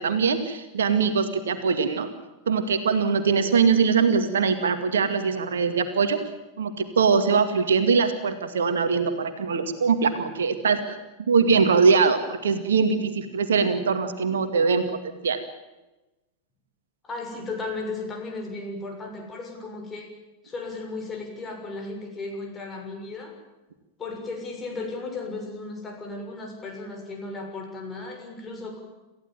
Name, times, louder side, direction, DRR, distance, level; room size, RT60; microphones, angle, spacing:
voice 1, 0.0-2.1 2.5-6.2 6.6-11.0 11.3-14.9 15.2-15.4, right 5 dB, 65° right, 8 dB, 2.2 m, -22 dB
voice 2, 17.0-20.1 20.4-23.3 24.0-28.8, left 3 dB, 20° left, 2 dB, 6.7 m, -35 dB
28.0 x 15.0 x 9.1 m, 1.0 s
figure-of-eight pair, 90°, 0 cm